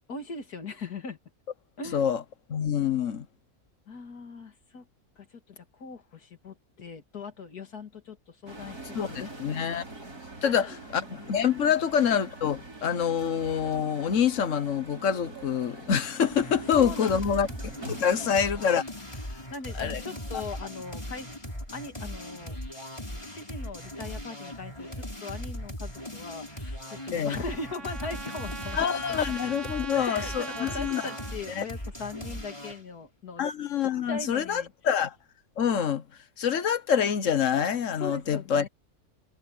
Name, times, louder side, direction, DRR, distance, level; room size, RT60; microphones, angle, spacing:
voice 1, 0.1-1.2 1.8-2.1 3.9-4.9 5.2-8.8 9.1-9.4 10.4-10.8 11.6-11.7 16.7-17.3 18.1-18.7 19.5-21.3 21.7-22.6 23.3-28.9 29.9-33.4 34.1-34.7 38.0-38.7, left 4 dB, 85° left, 2.7 m, -40 dB
voice 2, 1.9-2.2 2.5-3.3 8.9-9.8 10.4-17.5 17.9-18.8 19.8-20.0 27.1-27.4 28.7-31.1 31.6-31.7 33.4-35.1 35.6-36.0 36.4-38.7, left 8 dB, 55° left, 1.4 m, -26 dB
sound 1, 8.5-18.4, right 2 dB, 85° right, 6.6 m, -44 dB
sound 2, 16.3-32.8, left 1 dB, 20° left, 6.3 m, -39 dB
Trumpet, 26.9-31.4, right 4 dB, 50° right, 2.2 m, -41 dB
omnidirectional pair, 1.6 m